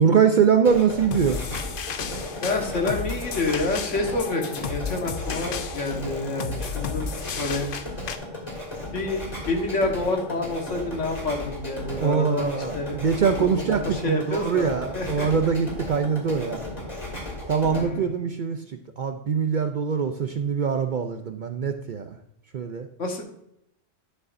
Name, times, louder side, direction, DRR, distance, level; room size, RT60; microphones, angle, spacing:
voice 1, 0.0-1.4 12.0-16.6 17.5-22.2 22.5-22.9, right 6 dB, 55° right, 6 dB, 0.5 m, -23 dB
sound 1, 0.5-17.8, left 1 dB, 30° left, 2.5 m, -35 dB
sound 2, 1.1-8.2, left 6 dB, 55° left, 0.7 m, -33 dB
voice 2, 2.4-7.1 7.4-7.7 8.9-13.0 13.4-14.7 14.9-15.3 17.7-18.1 23.0-23.2, left 2 dB, 80° left, 2 dB, 1.7 m, -28 dB
11.0 x 6.8 x 2.6 m, 0.75 s
omnidirectional pair, 1.3 m